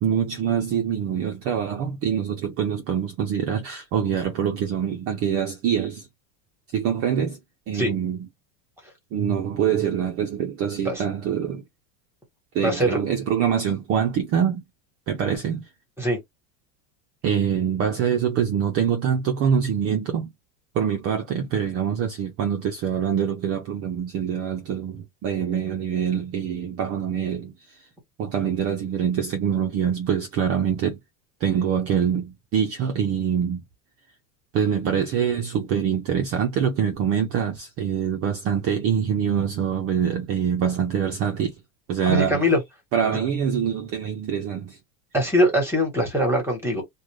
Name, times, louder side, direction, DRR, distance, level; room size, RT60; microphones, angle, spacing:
voice 1, 0.0-6.1 6.7-7.4 7.7-8.2 9.1-11.6 12.5-14.6 15.1-15.7 17.2-20.3 20.7-27.5 28.2-31.0 31.4-33.6 34.5-41.5 41.9-42.4 42.9-44.8, right 8 dB, 30° right, 0.4 m, -24 dB
voice 2, 12.6-13.0 16.0-16.2 42.0-42.6 45.1-46.8, equal, 5° right, 1.1 m, -22 dB
2.4 x 2.2 x 3.0 m
supercardioid pair, 145°, 48 cm